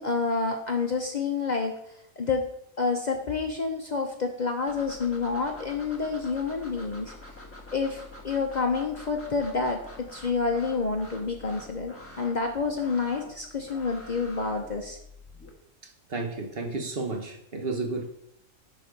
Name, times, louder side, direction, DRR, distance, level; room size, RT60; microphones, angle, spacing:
voice 1, 0.0-1.7 2.2-2.4 2.8-7.1 7.7-15.0, left 4 dB, 40° left, 0.8 m, -28 dB
sound 1, 4.7-15.5, left 2 dB, 10° left, 1.3 m, -46 dB
voice 2, 16.1-18.1, right 3 dB, 50° right, 1.2 m, -32 dB
11.5 x 4.3 x 5.1 m
omnidirectional pair, 1.4 m